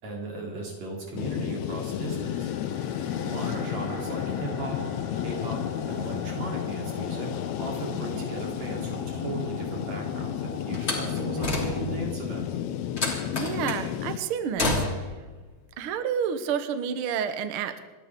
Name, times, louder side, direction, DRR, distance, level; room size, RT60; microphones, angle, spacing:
voice 1, 0.0-2.5 3.2-4.8 5.2-5.6 5.9-7.3 7.6-12.6, right 2 dB, 50° right, -1 dB, 4.7 m, -36 dB
sound 1, 1.2-14.2, left 10 dB, 80° left, 1.6 m, -32 dB
sound 2, 1.5-12.0, left 2 dB, 50° left, 0.9 m, -43 dB
Slam, 10.7-12.1 13.0-13.9 14.6-15.2, left 2 dB, 20° left, 2.8 m, -29 dB
voice 2, 13.3-15.1 15.8-17.8, right 7 dB, 85° right, 9 dB, 1.2 m, -30 dB
28.5 x 12.5 x 3.7 m, 1.3 s
omnidirectional pair, 4.1 m